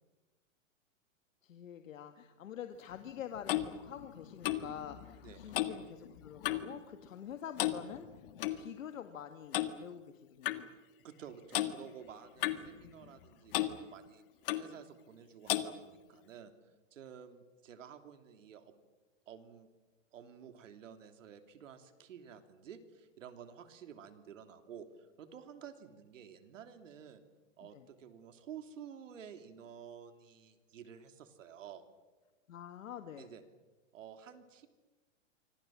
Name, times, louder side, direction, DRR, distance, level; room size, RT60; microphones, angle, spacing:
voice 1, 1.4-8.1 8.5-10.7 27.7-27.8 32.5-33.3, left 9 dB, 85° left, 7 dB, 1.9 m, -46 dB
Clock, 2.9-6.8 7.0-7.3 7.6-8.6 9.5-9.7 10.4-10.6 11.5-11.7 12.4-13.2 13.5-13.8 14.5-14.7 15.5-15.7, left 14 dB, 45° left, 1.7 m, -35 dB
voice 2, 5.2-5.6 11.0-14.2 14.6-16.5 16.9-18.7 19.3-19.7 20.1-27.2 27.6-31.8 33.2-33.4 33.9-34.7, right 8 dB, 75° right, 8 dB, 3.1 m, -52 dB
27.5 x 25.5 x 7.5 m, 1.2 s
hypercardioid pair, 165°, 39 cm